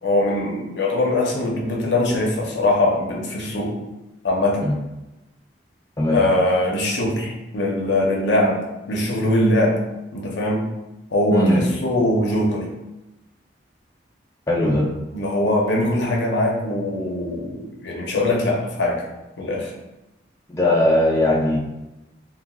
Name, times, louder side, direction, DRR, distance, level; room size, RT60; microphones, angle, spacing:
voice 1, 0.0-3.8 4.2-4.7 6.1-8.6 8.9-9.8 10.1-10.7 11.1-12.7 14.6-14.7 15.1-19.0 19.4-19.7, left 1 dB, 75° left, -1 dB, 0.6 m, -21 dB
voice 2, 11.3-11.6 14.5-14.8 20.5-21.6, left 1 dB, 15° left, -3 dB, 0.3 m, -19 dB
3.4 x 2.3 x 2.3 m, 0.98 s
head